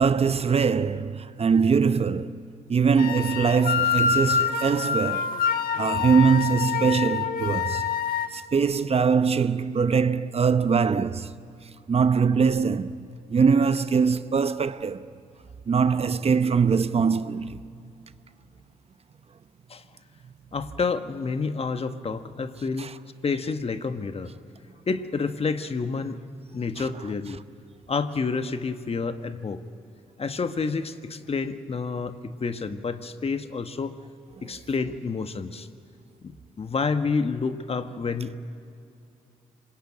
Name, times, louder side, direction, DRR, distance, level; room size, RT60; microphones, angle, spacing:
voice 1, 0.0-5.3 5.8-7.8 8.3-11.3 11.9-13.0 13.3-15.1 15.7-17.6 22.8-22.9 26.8-26.9 34.4-34.5, right 6 dB, 40° right, 0.8 m, -22 dB
sound 1, 3.0-8.3, left 7 dB, 65° left, 1.4 m, -26 dB
voice 2, 20.5-22.9 23.2-24.3 24.9-26.2 26.5-27.4 27.9-29.6 30.2-34.0 34.4-35.7 36.2-38.3, left 4 dB, 40° left, 1.4 m, -29 dB
26.0 x 21.0 x 9.0 m
hypercardioid pair, 50°, 16 cm